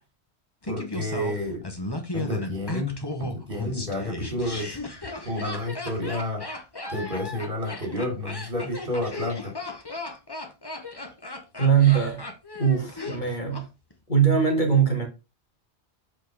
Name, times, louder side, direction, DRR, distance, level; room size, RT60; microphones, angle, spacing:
Laughter, 0.6-13.6 13.9-14.0, left 2 dB, 20° left, 1.2 m, -35 dB
voice 1, 0.6-1.6 2.1-4.8 5.2-6.4 6.9-9.5, left 1 dB, 50° right, 3.6 m, -30 dB
voice 2, 11.6-12.3 12.6-13.6 14.1-15.1, right 7 dB, 45° left, 1.9 m, -21 dB
8.2 x 4.5 x 4.7 m
omnidirectional pair, 1.2 m